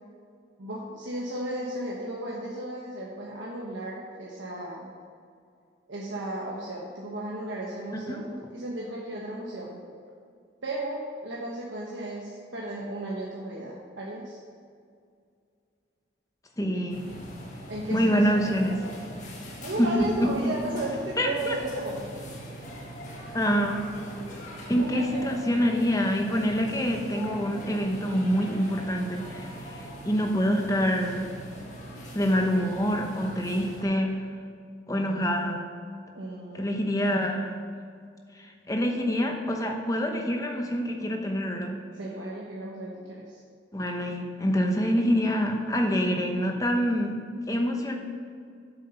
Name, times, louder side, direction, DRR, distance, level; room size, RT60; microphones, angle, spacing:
voice 1, 0.6-4.9 5.9-9.8 10.6-14.4 17.7-18.7 19.5-22.0 24.8-25.7 36.1-36.8 42.0-43.4, right 1 dB, 85° right, -4 dB, 1.3 m, -35 dB
voice 2, 16.6-17.0 17.9-18.8 19.8-20.5 21.2-21.5 23.3-23.8 24.7-31.3 32.1-34.2 34.9-35.6 36.5-37.5 38.4-41.7 43.7-47.2 47.5-48.0, equal, 20° left, 2 dB, 0.9 m, -26 dB
sound 1, 16.9-33.8, equal, 40° left, 1.6 m, -41 dB
8.2 x 7.3 x 5.6 m, 2.3 s
head